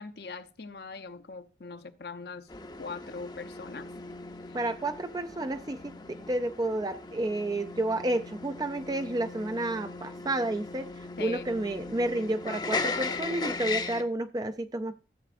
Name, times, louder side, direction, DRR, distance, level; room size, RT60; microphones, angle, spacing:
voice 1, 0.0-2.5 2.8-3.9 4.5-4.6 11.2-11.5, left 4 dB, 65° left, 11 dB, 0.8 m, -41 dB
sound 1, 2.5-14.0, left 3 dB, 25° left, 0.6 m, -38 dB
voice 2, 4.5-14.9, right 1 dB, 20° right, 9 dB, 0.4 m, -31 dB
14.0 x 7.9 x 2.5 m, 0.34 s
head